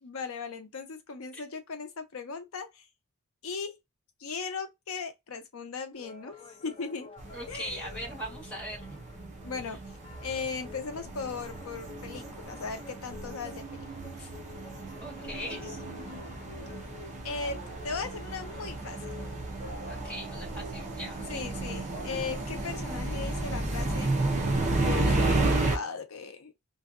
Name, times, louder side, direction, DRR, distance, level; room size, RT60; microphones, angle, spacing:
voice 1, 0.0-2.8 3.4-3.8 4.2-6.4 6.6-7.1 7.5-8.0 9.4-9.8 10.2-13.9 17.2-19.3 21.3-24.1 24.7-26.5, left 5 dB, 65° left, 0.6 m, -37 dB
sound 1, 5.9-20.0, left 5 dB, 25° left, 0.4 m, -51 dB
sound 2, 7.2-25.8, right 2 dB, 30° right, 0.5 m, -33 dB
voice 2, 7.3-8.8 14.2-14.3 15.0-15.8 19.9-21.5, equal, 5° left, 1.2 m, -40 dB
sound 3, 15.3-24.8, right 1 dB, 55° right, 1.1 m, -47 dB
2.6 x 2.2 x 2.4 m
head